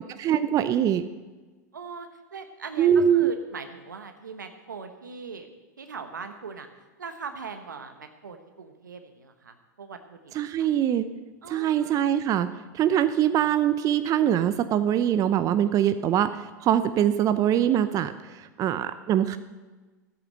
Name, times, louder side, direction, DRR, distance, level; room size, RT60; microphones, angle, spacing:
voice 1, 0.2-1.0 2.8-3.3 10.3-11.1 11.5-12.5 12.7-19.4, right 10 dB, 35° right, 11 dB, 0.6 m, -23 dB
voice 2, 1.7-5.5 5.8-6.7 7.0-10.7 11.4-12.1, right 5 dB, 85° right, 7 dB, 1.0 m, -41 dB
13.0 x 8.4 x 6.5 m, 1.2 s
hypercardioid pair, 90°, 10 cm